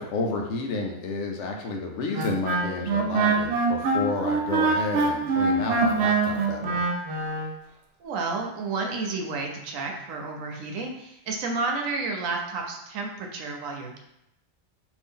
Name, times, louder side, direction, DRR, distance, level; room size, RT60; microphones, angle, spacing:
voice 1, 0.0-6.8, left 3 dB, 70° left, 2 dB, 0.8 m, -31 dB
Wind instrument woodwind instrument, 2.1-7.5, right 4 dB, 65° right, 0.7 m, -24 dB
voice 2, 8.0-14.0, right 3 dB, 85° right, 2 dB, 1.0 m, -31 dB
2.7 x 2.6 x 3.6 m, 0.82 s
omnidirectional pair, 1.4 m